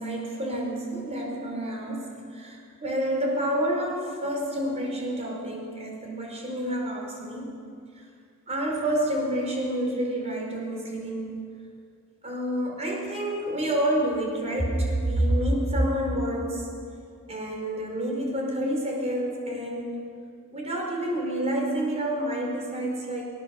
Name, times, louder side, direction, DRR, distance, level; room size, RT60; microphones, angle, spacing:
voice 1, 0.0-7.5 8.0-8.1 8.5-11.4 12.2-16.7 17.3-20.0 20.5-23.3, right 1 dB, 30° right, 0 dB, 4.9 m, -28 dB
21.0 x 19.0 x 7.3 m, 2.3 s
head